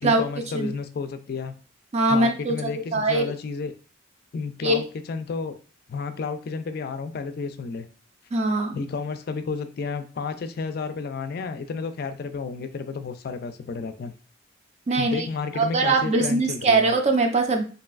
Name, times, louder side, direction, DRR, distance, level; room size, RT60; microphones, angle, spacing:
voice 1, 0.0-1.5 2.1-3.7 4.3-5.6 5.9-7.9 8.7-14.1 15.0-16.9, left 4 dB, 55° left, 9 dB, 0.3 m, -31 dB
voice 2, 1.9-3.3 4.6-4.8 8.3-8.8 14.9-15.3 15.6-17.6, right 2 dB, 35° right, 4 dB, 0.4 m, -22 dB
3.1 x 2.6 x 2.4 m, 0.38 s
head